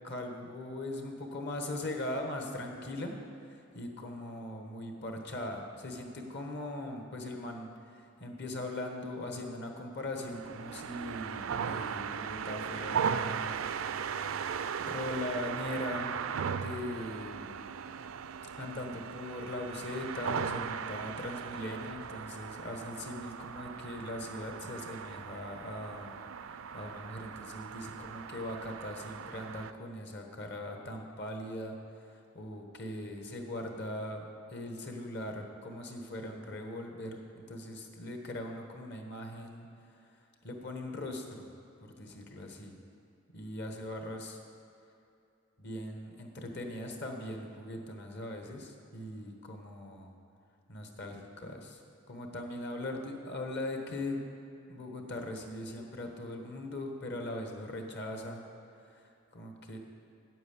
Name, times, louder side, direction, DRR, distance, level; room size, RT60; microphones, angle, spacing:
voice 1, 0.0-3.1 3.5-13.6 14.8-16.1 16.5-17.7 18.6-26.2 26.7-34.2 34.5-39.7 40.4-41.5 41.8-42.8 43.3-44.4 45.6-50.1 50.7-51.8 52.1-54.2 54.7-58.4 58.8-59.8, left 1 dB, 55° left, 3 dB, 1.4 m, -40 dB
sound 1, 10.2-29.7, right 7 dB, 70° right, 0.4 m, -38 dB
9.2 x 8.5 x 7.1 m, 2.6 s
head